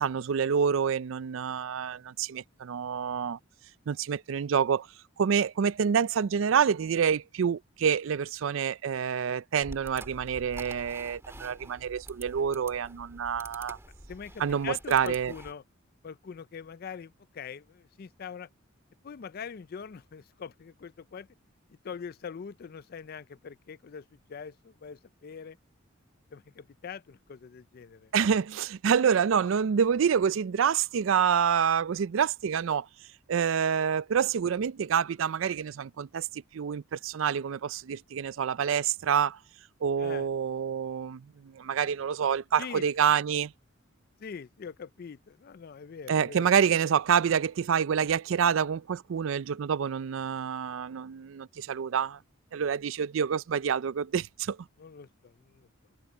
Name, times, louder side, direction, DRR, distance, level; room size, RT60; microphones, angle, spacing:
voice 1, 0.0-3.4 3.9-4.9 5.2-13.8 14.4-15.3 28.1-32.9 33.3-39.4 39.8-43.5 46.1-52.2 52.5-54.6, right 7 dB, 70° right, 0.4 m, -27 dB
sound 1, 9.6-15.5, right 1 dB, 15° right, 2.3 m, -47 dB
voice 2, 14.1-15.6 16.0-18.5 19.0-21.3 21.7-25.6 26.3-28.1 40.0-40.3 42.6-42.8 43.1-43.2 44.2-46.8 54.8-55.7, left 6 dB, 50° left, 0.4 m, -43 dB
head